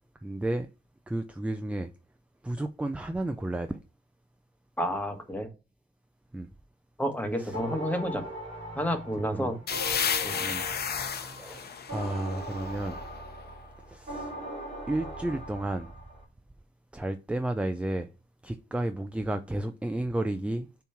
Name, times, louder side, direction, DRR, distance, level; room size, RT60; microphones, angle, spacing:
voice 1, 0.2-0.7 1.1-1.9 2.4-3.8 6.3-6.5 7.4-7.5 9.3-9.5 10.4-10.7 11.3-13.0 13.9-14.3 14.9-15.9 16.9-18.1 18.4-20.7, right 1 dB, 5° right, 0.4 m, -32 dB
voice 2, 4.8-5.5 7.0-8.2 8.7-9.6 10.2-10.3, equal, 10° left, 1.3 m, -30 dB
sound 1, 7.5-16.2, equal, 35° right, 3.1 m, -40 dB
sound 2, 9.7-13.3, left 7 dB, 60° left, 0.9 m, -32 dB
6.9 x 3.1 x 5.8 m
cardioid pair, 115°, 19 cm